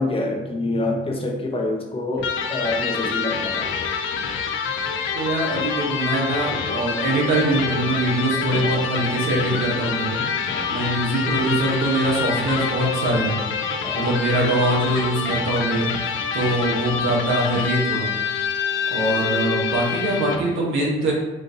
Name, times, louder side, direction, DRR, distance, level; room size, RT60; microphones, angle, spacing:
voice 1, 0.0-3.7 10.1-10.3 10.5-10.8 13.8-14.0, left 2 dB, 30° left, 2 dB, 0.6 m, -26 dB
Electric guitar, 2.2-20.6, left 6 dB, 75° left, 0.5 m, -26 dB
voice 2, 5.1-10.2 10.7-13.4 13.9-15.9 16.3-18.1 18.9-21.1, right 2 dB, 85° right, -3 dB, 1.1 m, -23 dB
3.8 x 2.5 x 2.7 m, 1.0 s
cardioid pair, 90°, 20 cm